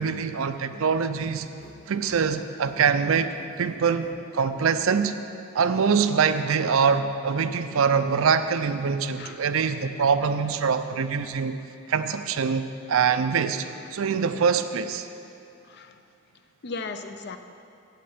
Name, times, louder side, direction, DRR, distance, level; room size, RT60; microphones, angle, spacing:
voice 1, 0.0-1.5 1.9-5.1 5.5-11.6 11.9-13.6 13.9-15.1, right 6 dB, 65° right, 10 dB, 0.4 m, -24 dB
sound 1, 1.4-4.2, equal, 30° left, 1.3 m, -49 dB
voice 2, 9.1-9.4 13.8-13.9 15.6-16.0 16.6-17.4, left 4 dB, 50° left, 9 dB, 0.5 m, -37 dB
7.7 x 6.6 x 7.9 m, 2.5 s
head